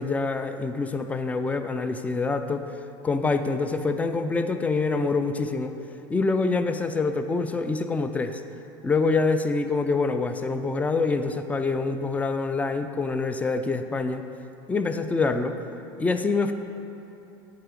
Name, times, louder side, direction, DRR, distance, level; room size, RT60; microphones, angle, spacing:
voice 1, 0.0-2.6 3.0-5.7 6.1-8.4 8.8-14.2 14.7-15.6 16.0-16.5, left 3 dB, 10° left, 9 dB, 0.3 m, -25 dB
8.0 x 3.8 x 4.7 m, 2.9 s
supercardioid pair, 100°, 12 cm